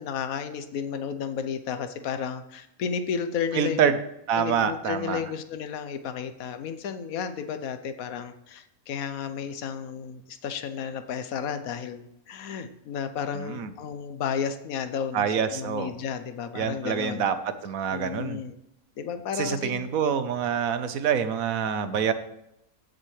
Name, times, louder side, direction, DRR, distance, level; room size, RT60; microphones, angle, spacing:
voice 1, 0.0-3.9 4.3-17.2 17.9-18.5 19.0-19.9, left 7 dB, 80° left, 10 dB, 1.3 m, -33 dB
voice 2, 3.5-3.9 4.3-5.2 13.4-13.7 15.1-15.9 16.5-17.3 17.6-18.4 19.4-22.1, right 7 dB, 75° right, 11 dB, 1.3 m, -26 dB
16.0 x 6.6 x 3.2 m, 0.82 s
omnidirectional pair, 1.5 m